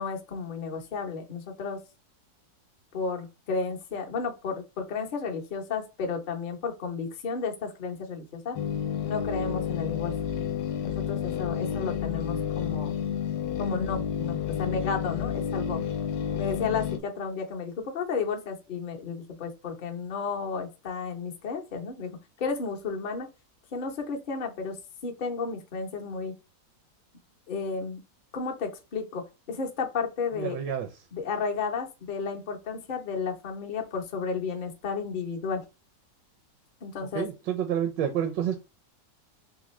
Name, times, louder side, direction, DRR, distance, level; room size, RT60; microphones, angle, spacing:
voice 1, 0.0-1.8 2.9-8.6 9.0-10.1 10.8-12.9 13.6-15.8 16.3-22.1 22.4-23.3 23.7-24.8 25.0-26.3 27.5-28.0 28.3-30.6 31.1-35.6 36.8-37.2, left 5 dB, 50° left, 0.6 m, -32 dB
sound 1, 8.6-17.0, left 8 dB, 80° left, 1.2 m, -30 dB
voice 2, 30.3-30.9 37.1-38.6, right 9 dB, 80° right, 1.3 m, -29 dB
3.6 x 3.3 x 3.1 m
omnidirectional pair, 1.9 m